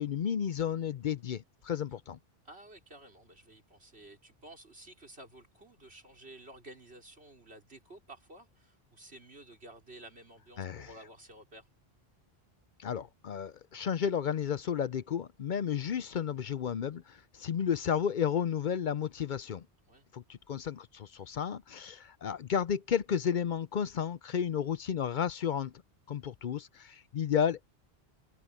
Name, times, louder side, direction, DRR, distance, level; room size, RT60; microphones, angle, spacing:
voice 1, 0.0-2.2 10.6-10.9 12.8-19.6 20.1-25.7 26.1-27.7, left 8 dB, 55° left, 0.7 m, -32 dB
voice 2, 2.4-11.7 19.9-20.1, right 1 dB, 90° right, 5.1 m, -52 dB
omnidirectional pair, 1.1 m